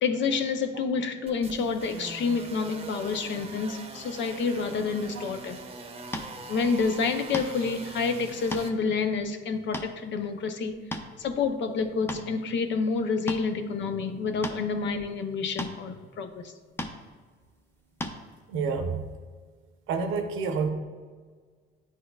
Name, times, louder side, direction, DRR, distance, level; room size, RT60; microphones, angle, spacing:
voice 1, 0.0-5.6 6.5-10.7 11.2-16.5, left 5 dB, 65° left, 8 dB, 0.6 m, -28 dB
sound 1, 1.3-8.7, right 3 dB, 30° right, 0.7 m, -42 dB
sound 2, 6.1-6.3 7.3-7.7 8.3-8.7 9.2-9.3 9.7-9.9 10.7-11.2 11.8-12.3 13.3-13.5 14.4-14.6 15.6-15.8 16.8-17.0 18.0-18.2, left 1 dB, 10° left, 0.6 m, -34 dB
voice 2, 18.5-19.0 19.9-20.7, right 5 dB, 85° right, 5 dB, 0.7 m, -28 dB
9.5 x 4.2 x 2.3 m, 1.5 s
cardioid pair, 90°, 20 cm